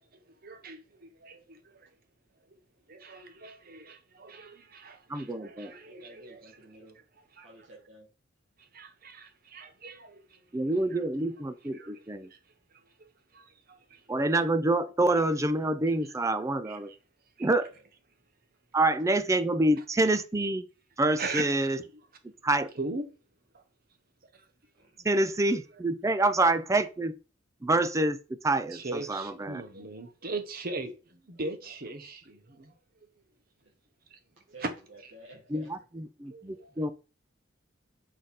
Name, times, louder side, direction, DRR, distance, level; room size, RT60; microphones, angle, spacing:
voice 1, 0.4-1.9 2.9-6.4 7.4-7.5 8.7-11.0 11.7-11.9 12.2-12.4 13.0-13.1 13.3-14.0 16.7-16.8 17.4-17.5 21.2-21.4 22.8-23.0 23.5-23.6 24.3-24.4 25.0-25.1 28.7-32.7 34.6-34.7 36.3-36.7, right 3 dB, 50° right, 1.1 m, -40 dB
voice 2, 5.1-5.7 10.5-12.3 14.1-16.9 17.4-17.7 18.7-20.7 21.0-21.8 22.4-22.7 25.0-27.1 27.6-28.2 28.4-29.6 35.5-36.9, right 2 dB, 15° right, 0.4 m, -27 dB
voice 3, 5.6-7.0 7.4-8.1 17.7-17.8 24.7-24.9 31.6-31.7 33.6-33.7 34.4-35.7 36.2-36.3, right 1 dB, 80° right, 1.8 m, -52 dB
6.3 x 3.9 x 4.1 m
head